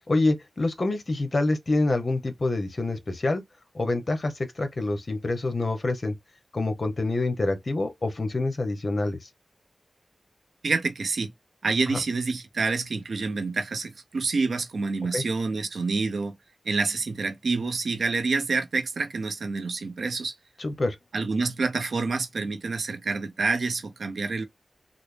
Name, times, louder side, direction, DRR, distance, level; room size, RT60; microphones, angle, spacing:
voice 1, 0.1-3.4 3.7-6.1 6.5-9.3 11.9-12.0 15.1-15.2 20.6-21.0, left 2 dB, 55° left, 1.0 m, -26 dB
voice 2, 10.6-11.3 11.6-16.3 16.7-20.3 21.1-24.4, right 4 dB, 85° right, 0.6 m, -27 dB
3.9 x 2.0 x 3.2 m
cardioid pair, 55°, 0 cm